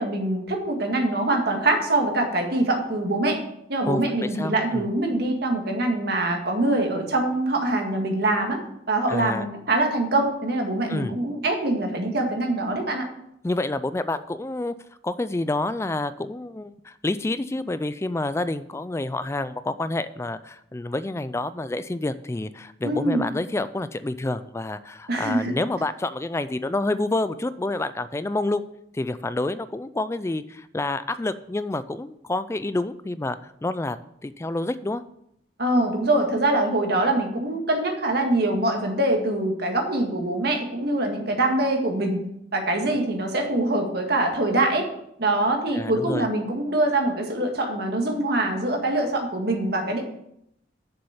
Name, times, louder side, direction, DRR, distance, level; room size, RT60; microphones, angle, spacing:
voice 1, 0.0-3.4 3.7-8.6 8.9-13.1 22.8-23.2 25.1-25.5 35.6-42.2 42.5-44.9 45.2-50.0, right 2 dB, 60° right, 3 dB, 1.8 m, -24 dB
voice 2, 3.9-4.9 9.1-9.5 10.9-11.1 13.4-14.7 15.0-28.7 28.9-34.0 34.2-35.0 45.7-46.3, left 2 dB, 15° left, 13 dB, 0.3 m, -28 dB
7.0 x 6.5 x 7.1 m, 0.76 s
head